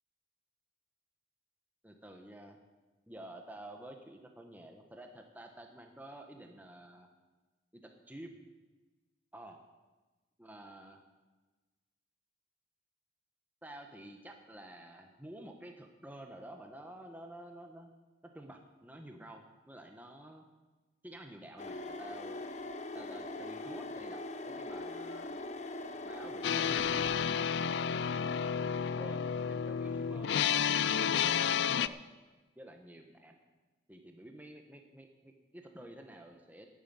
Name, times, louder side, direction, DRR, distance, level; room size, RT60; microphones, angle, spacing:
voice 1, 1.8-2.6 3.1-7.1 7.7-8.4 9.3-9.6 10.4-11.0 13.6-17.9 18.2-20.5 21.0-22.4 22.9-25.4 26.0-28.1 28.8-32.0 32.5-33.4 33.9-36.7, right 1 dB, 10° right, 3 dB, 1.1 m, -50 dB
sound 1, 21.6-27.5, left 2 dB, 35° left, 0.7 m, -42 dB
sound 2, 26.4-31.9, left 7 dB, 60° left, 0.4 m, -31 dB
11.5 x 8.9 x 9.4 m, 1.2 s
head